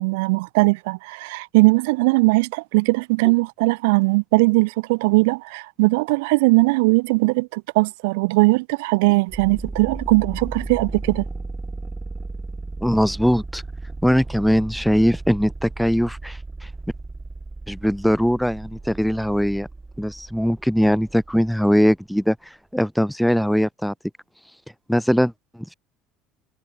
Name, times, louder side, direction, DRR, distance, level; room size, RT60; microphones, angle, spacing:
voice 1, 0.0-11.2, right 26 dB, 80° right, 1.0 m, -19 dB
sound 1, 9.3-22.0, right 3 dB, 15° right, 4.5 m, -35 dB
voice 2, 12.8-13.6 14.0-16.4 17.7-19.7 20.0-22.4 22.7-23.9 24.9-25.7, equal, ahead, 2.1 m, -20 dB
hypercardioid pair, 80°, 0 cm